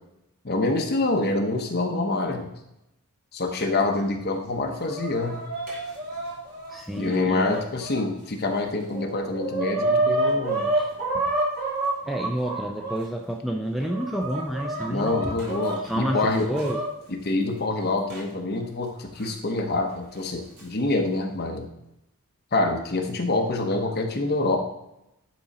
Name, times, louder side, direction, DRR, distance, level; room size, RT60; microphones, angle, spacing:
voice 1, 0.4-2.5 3.3-5.4 6.9-10.7 14.9-16.5 17.1-21.7 22.5-24.6, left 2 dB, 45° left, 2 dB, 1.1 m, -26 dB
Chicken rooster, 4.5-8.0 8.6-8.7 8.9-13.0 13.6-16.8 18.1-18.2 19.2-19.3 20.3-20.6, right 2 dB, 50° right, 2.6 m, -29 dB
voice 2, 6.7-7.6 10.7-10.9 12.1-15.3 15.8-16.8, equal, ahead, 2 dB, 0.4 m, -29 dB
10.5 x 3.8 x 4.2 m, 0.86 s
head